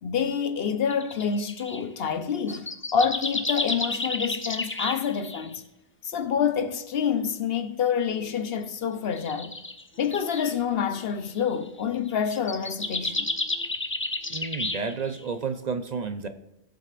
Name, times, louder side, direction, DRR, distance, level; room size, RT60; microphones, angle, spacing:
voice 1, 0.0-5.6 6.0-9.6 10.0-13.3, left 7 dB, 70° left, 1.0 m, -27 dB
sound 1, 0.9-1.8 2.3-5.5 7.2-7.3 8.0-8.4 9.1-10.5 11.4-11.7 12.1-15.2, left 2 dB, 15° left, 0.5 m, -32 dB
voice 2, 14.3-16.3, right 5 dB, 45° right, 0.7 m, -31 dB
18.0 x 7.9 x 2.5 m
omnidirectional pair, 1.0 m